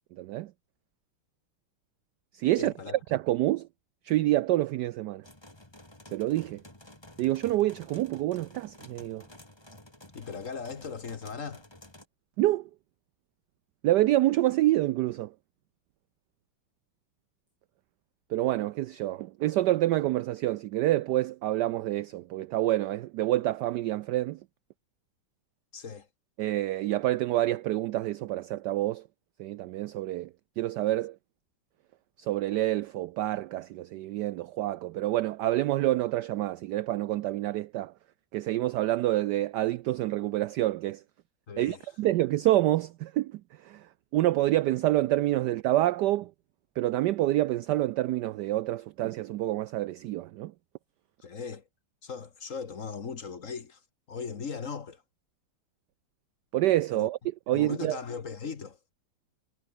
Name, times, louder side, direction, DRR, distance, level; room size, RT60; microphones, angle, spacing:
voice 1, 0.2-0.5 2.3-2.7 3.1-3.7 4.0-5.2 6.1-6.6 7.2-9.2 12.4-12.7 13.8-15.3 18.3-24.4 26.4-29.0 29.4-30.3 30.6-31.2 32.2-37.9 38.3-41.0 41.6-46.3 46.8-50.5 56.5-57.2 57.5-58.0, right 15 dB, 85° right, 0.9 m, -27 dB
voice 2, 2.6-3.0 10.1-11.6 25.7-26.1 41.5-41.9 51.2-51.7 52.0-53.8 54.1-55.0 56.9-57.1 57.5-58.8, left 5 dB, 40° left, 1.5 m, -38 dB
sound 1, 5.2-12.0, left 1 dB, 10° left, 3.3 m, -52 dB
omnidirectional pair, 2.3 m